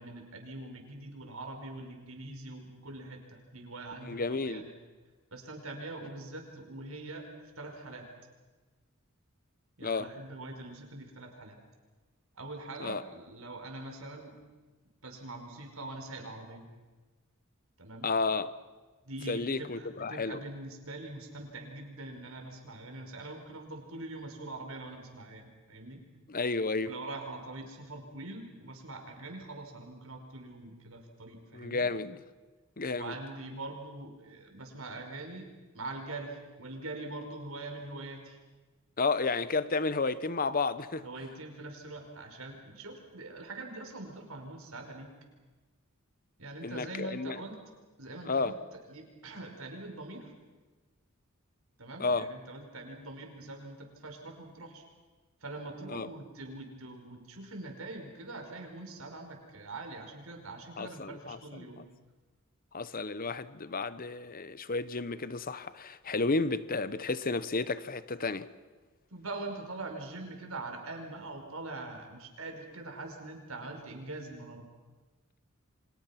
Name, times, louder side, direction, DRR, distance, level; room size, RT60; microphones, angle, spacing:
voice 1, 0.0-4.7 5.3-7.3 7.6-8.0 9.8-11.6 12.4-14.4 15.0-16.7 17.8-18.1 19.0-26.0 26.8-31.9 32.9-35.5 35.7-38.4 41.0-45.1 46.4-47.6 48.0-50.3 51.8-54.8 55.4-61.9 69.1-74.7, right 2 dB, 80° right, 5.1 m, -43 dB
voice 2, 4.0-4.6 9.8-10.1 12.8-13.0 18.0-18.5 19.3-20.4 26.3-26.9 31.5-32.2 32.8-33.1 39.0-41.0 46.6-47.4 48.2-48.5 52.0-52.3 55.9-56.1 60.8-61.8 62.7-68.5, left 3 dB, 45° left, 1.0 m, -32 dB
29.0 x 25.0 x 6.0 m
head